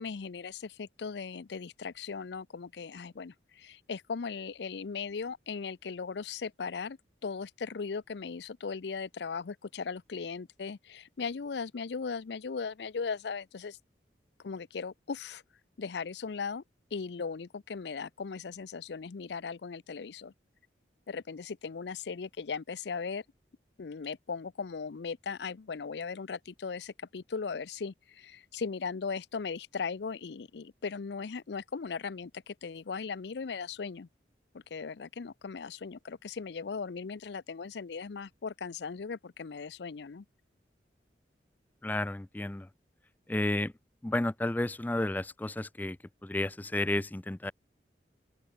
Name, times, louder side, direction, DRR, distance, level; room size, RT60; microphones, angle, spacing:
voice 1, 0.0-13.8 14.4-15.4 15.8-16.6 16.9-20.3 21.1-23.2 23.8-34.1 34.5-40.2, left 5 dB, 75° left, 0.5 m, -38 dB
voice 2, 41.8-42.7 43.3-43.7 44.0-46.0 46.2-47.5, left 1 dB, 10° left, 0.3 m, -31 dB
open air
head